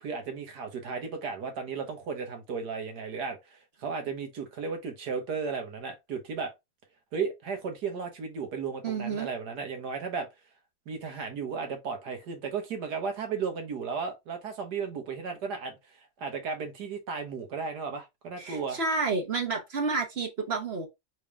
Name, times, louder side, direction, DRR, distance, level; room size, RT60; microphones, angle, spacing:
voice 1, 0.0-6.5 7.1-10.3 10.9-15.8 16.2-18.8, right 5 dB, 85° right, 1.8 m, -34 dB
voice 2, 8.8-9.3 18.4-20.9, right 4 dB, 45° right, 1.1 m, -30 dB
4.1 x 3.5 x 3.4 m
omnidirectional pair, 1.7 m